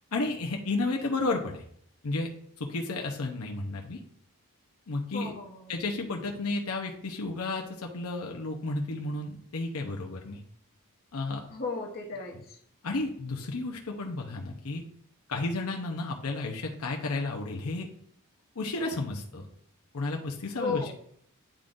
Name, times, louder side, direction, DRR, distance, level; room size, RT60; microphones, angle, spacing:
voice 1, 0.1-1.6 2.0-2.3 2.6-4.0 4.9-5.3 5.7-10.4 11.1-11.4 12.8-14.8 15.3-17.9 18.6-19.4 19.9-20.9, left 2 dB, 85° left, 2 dB, 0.8 m, -32 dB
voice 2, 5.1-5.8 11.5-12.6 20.5-20.9, left 4 dB, 45° left, -1 dB, 1.0 m, -35 dB
10.0 x 3.7 x 2.5 m, 0.64 s
head